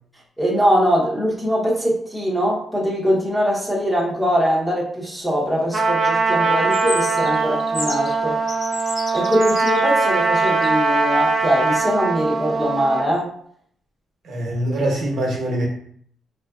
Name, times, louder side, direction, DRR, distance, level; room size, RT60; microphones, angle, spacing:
voice 1, 0.4-8.4 9.1-13.3, equal, 5° left, -5 dB, 0.9 m, -22 dB
Trumpet, 5.7-13.1, right 4 dB, 40° right, 0.5 m, -21 dB
sound 1, 6.6-8.2 8.5-10.8, left 1 dB, 65° left, 1.3 m, -32 dB
voice 2, 14.2-15.7, right 1 dB, 65° right, -1 dB, 1.0 m, -23 dB
4.3 x 2.5 x 2.3 m, 0.63 s
cardioid pair, 115°, 0 cm